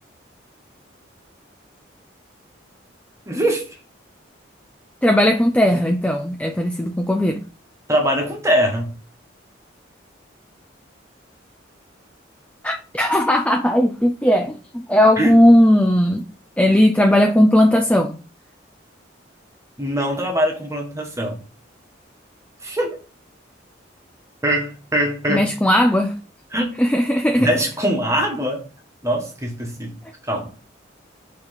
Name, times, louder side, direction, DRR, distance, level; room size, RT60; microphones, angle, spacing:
voice 1, 3.3-3.6 7.9-8.9 15.1-15.4 19.8-21.4 22.6-22.9 24.4-25.5 26.5-26.7 27.4-28.6 29.0-30.0 30.3-30.5, equal, 15° right, 1.6 m, -22 dB
voice 2, 5.0-7.4 12.6-16.2 16.6-18.1 25.3-26.2 26.8-27.5, left 1 dB, 5° left, 0.5 m, -17 dB
6.2 x 4.1 x 6.0 m
head